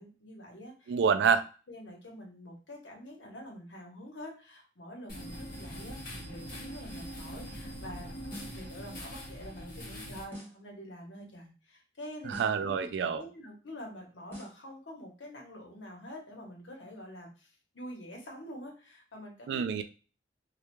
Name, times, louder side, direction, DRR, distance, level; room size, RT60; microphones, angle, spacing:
voice 1, 0.0-1.0 1.7-8.1 8.4-12.9 13.1-19.8, equal, 85° left, 0 dB, 0.9 m, -46 dB
voice 2, 0.9-1.4 12.2-13.2 19.5-19.8, right 6 dB, 70° right, 10 dB, 0.3 m, -27 dB
sound 1, 5.1-10.2, equal, 50° left, 0.8 m, -43 dB
sound 2, 8.3-8.7 10.3-10.7 12.3-12.7 14.3-14.7, equal, 15° left, 0.8 m, -46 dB
2.3 x 2.1 x 3.0 m, 0.35 s
head